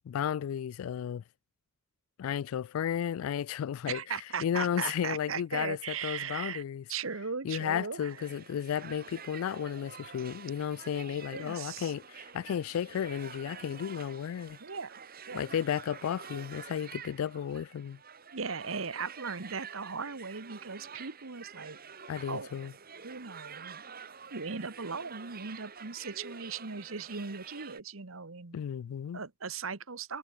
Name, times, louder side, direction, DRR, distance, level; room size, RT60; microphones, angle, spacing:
voice 1, 0.1-1.2 2.2-4.0 4.4-6.8 7.4-14.6 15.3-18.0 22.1-22.7 28.5-29.2, left 9 dB, 90° left, 0.3 m, -33 dB
voice 2, 3.9-6.6 6.9-8.2 11.3-11.9 14.6-15.0 15.3-15.4 18.3-21.8 22.3-22.5 23.0-23.8 24.3-28.6 29.1-30.2, right 5 dB, 75° right, 1.3 m, -38 dB
sound 1, 8.1-27.8, right 6 dB, 45° right, 3.0 m, -48 dB
head